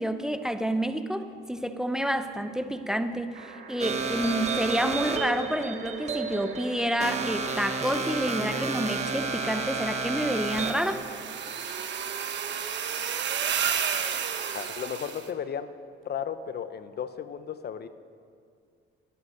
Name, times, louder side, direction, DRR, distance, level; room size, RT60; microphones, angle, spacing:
voice 1, 0.0-11.1, equal, 5° right, 9 dB, 0.8 m, -29 dB
sound 1, 3.3-14.6 16.0-16.1, right 4 dB, 80° right, 2.8 m, -45 dB
sound 2, 3.8-10.9, right 4 dB, 35° right, 1.6 m, -31 dB
sound 3, 10.3-15.2, right 8 dB, 65° right, 1.3 m, -31 dB
voice 2, 14.5-15.7 16.0-17.9, left 8 dB, 55° left, 12 dB, 0.8 m, -34 dB
17.0 x 11.5 x 6.6 m, 2.2 s
cardioid pair, 90°, 20 cm